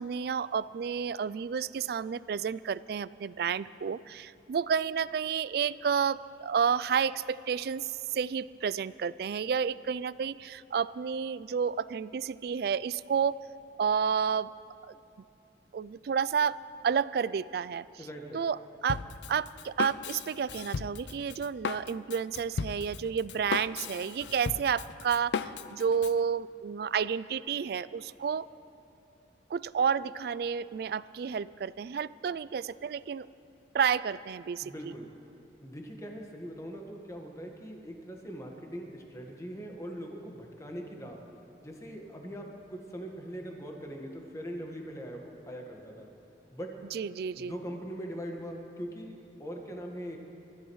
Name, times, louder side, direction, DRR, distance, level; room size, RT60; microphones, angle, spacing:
voice 1, 0.0-13.4 13.8-14.5 14.9-15.0 15.7-16.6 16.8-17.8 18.3-19.0 19.3-28.5 29.5-33.3 33.7-34.9 46.9-47.5, right 7 dB, 60° right, 18 dB, 0.3 m, -30 dB
voice 2, 18.0-18.4 34.6-35.1 35.6-41.2 41.6-46.1 46.5-46.7 47.3-50.2, equal, 20° left, 1 dB, 1.5 m, -41 dB
Drum kit, 18.9-26.2, left 5 dB, 80° left, 0.4 m, -36 dB
29.0 x 14.0 x 3.2 m, 2.7 s
head